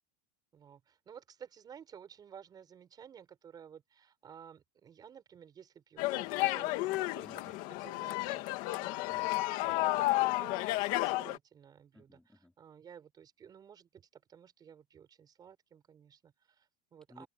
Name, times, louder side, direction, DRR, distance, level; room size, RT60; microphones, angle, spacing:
voice 1, 0.5-7.3 7.7-9.0 9.8-17.3, right 8 dB, 20° right, 5.2 m, -54 dB
sound 1, 6.0-11.4, left 19 dB, 45° left, 1.9 m, -32 dB
voice 2, 7.2-7.8 9.1-9.9 11.9-12.5 17.1-17.3, left 1 dB, 5° left, 4.1 m, -57 dB
supercardioid pair, 170°, 20 cm